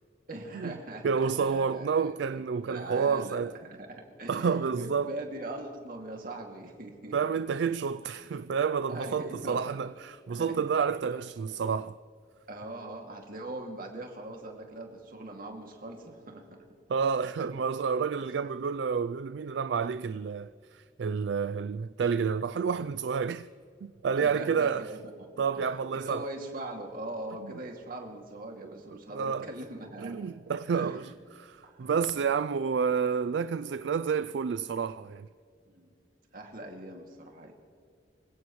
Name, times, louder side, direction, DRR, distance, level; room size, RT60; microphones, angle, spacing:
voice 1, 0.3-7.1 8.1-8.3 8.9-9.7 10.3-10.7 11.1-11.2 12.5-16.6 17.5-17.6 18.2-18.3 24.2-25.3 25.5-30.2 30.7-31.1 31.6-31.9 35.7-35.9 36.3-37.5, right 1 dB, 50° right, 2.4 m, -41 dB
voice 2, 1.0-3.5 4.3-5.1 7.1-12.0 16.9-23.5 23.8-24.9 25.4-26.2 27.4-27.5 29.1-29.5 30.0-31.1 31.4-35.3, right 6 dB, 65° right, 0.4 m, -29 dB
26.0 x 16.5 x 3.1 m
head